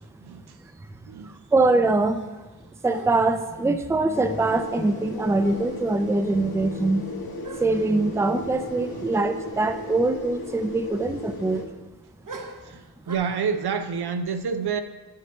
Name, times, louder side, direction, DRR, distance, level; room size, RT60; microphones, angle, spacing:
voice 1, 0.2-0.6 1.1-1.4 8.9-9.0 12.6-14.8, right 6 dB, 80° right, 9 dB, 0.6 m, -28 dB
voice 2, 1.2-2.2 2.8-7.1 7.6-11.6, right 2 dB, 5° right, 9 dB, 0.4 m, -23 dB
sound 1, 1.9-2.5 2.9-3.7 5.1-5.2 5.4-5.9 6.3-6.4 7.4-8.0 8.6-8.9 9.1-9.2 12.2-13.2, right 3 dB, 55° right, 0.9 m, -43 dB
sound 2, 4.1-11.7, left 2 dB, 65° left, 1.2 m, -36 dB
9.9 x 5.3 x 4.3 m, 1.2 s
wide cardioid pair, 95°, 39 cm